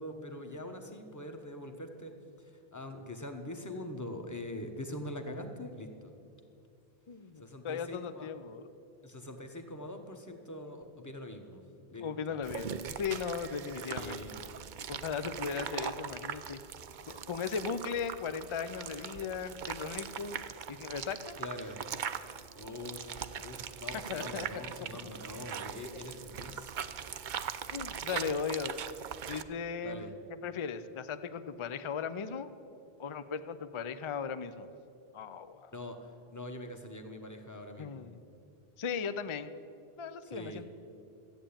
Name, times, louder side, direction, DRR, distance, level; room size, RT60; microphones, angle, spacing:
voice 1, 0.0-6.1 7.4-8.3 9.0-12.4 13.8-14.4 21.4-21.8 22.5-26.8 29.8-30.1 35.7-38.1 40.2-40.6, left 1 dB, 20° left, 5 dB, 1.1 m, -43 dB
voice 2, 7.1-8.7 12.0-14.2 14.9-16.6 17.1-20.4 20.7-21.4 24.1-24.5 27.7-28.7 29.3-30.1 30.4-32.5 33.0-34.7 35.1-35.7 37.8-38.2 38.8-39.5 40.0-40.6, left 6 dB, 40° left, 12 dB, 0.5 m, -37 dB
sound 1, 12.4-29.4, right 8 dB, 55° right, 0.7 m, -41 dB
13.5 x 8.9 x 8.7 m, 2.7 s
omnidirectional pair, 1.0 m